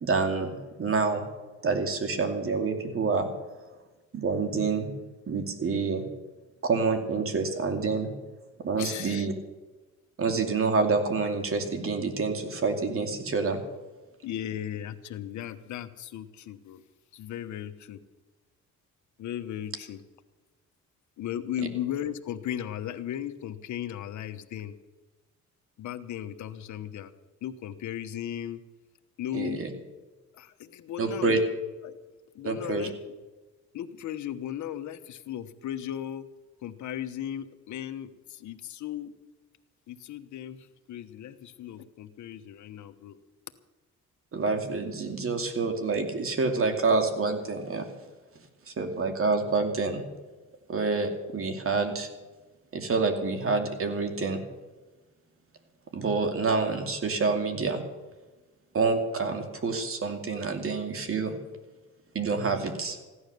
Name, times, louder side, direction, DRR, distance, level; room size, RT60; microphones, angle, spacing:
voice 1, 0.0-1.2 1.6-3.3 4.1-4.9 5.3-6.1 6.6-8.1 8.6-9.3 10.2-13.6 29.3-29.7 31.0-31.4 32.4-32.9 44.3-47.9 48.7-50.0 50.7-52.1 52.7-54.4 55.9-57.8 58.7-61.4 62.1-63.0, right 4 dB, 45° right, 6 dB, 2.6 m, -27 dB
voice 2, 8.8-9.3 14.2-16.8 17.1-18.0 19.2-20.0 21.2-24.8 25.8-27.1 27.4-28.6 29.2-29.6 30.3-31.4 31.8-32.0 32.3-32.9 33.7-36.3 36.6-39.1 39.9-43.2, left 10 dB, 70° left, 10 dB, 1.1 m, -36 dB
16.0 x 11.5 x 6.8 m, 1.2 s
cardioid pair, 90°, 30 cm